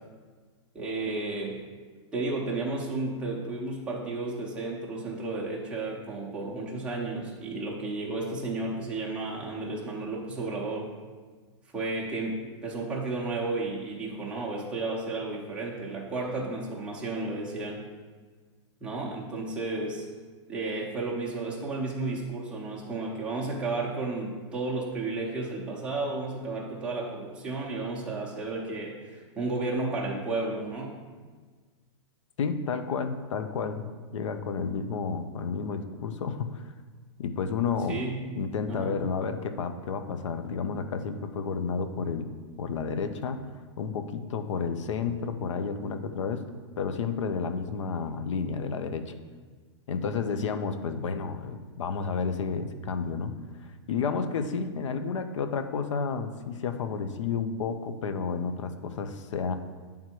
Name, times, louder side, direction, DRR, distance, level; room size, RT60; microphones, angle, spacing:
voice 1, 0.7-1.6 2.1-10.9 11.7-12.3 12.6-17.8 18.8-20.0 20.5-30.9 37.9-38.3 38.7-39.1, right 3 dB, 5° right, -4 dB, 0.8 m, -33 dB
voice 2, 32.4-36.7 37.2-38.0 38.4-42.3 42.6-43.4 43.8-46.4 46.8-49.1 49.9-53.3 53.6-59.6, left 5 dB, 80° left, 8 dB, 0.7 m, -31 dB
8.9 x 3.6 x 4.5 m, 1.5 s
supercardioid pair, 165°, 16 cm